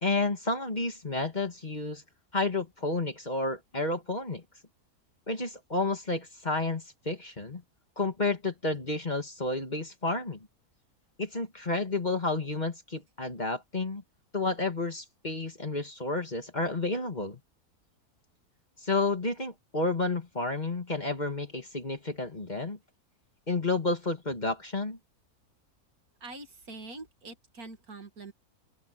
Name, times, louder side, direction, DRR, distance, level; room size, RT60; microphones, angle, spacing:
voice 1, 0.0-2.0 2.3-4.4 5.3-7.6 8.0-10.5 11.2-14.0 14.3-17.4 18.8-22.8 23.5-25.0, left 3 dB, 30° left, 2.3 m, -31 dB
voice 2, 26.2-28.3, right 2 dB, 70° right, 2.9 m, -44 dB
open air
omnidirectional pair, 1.6 m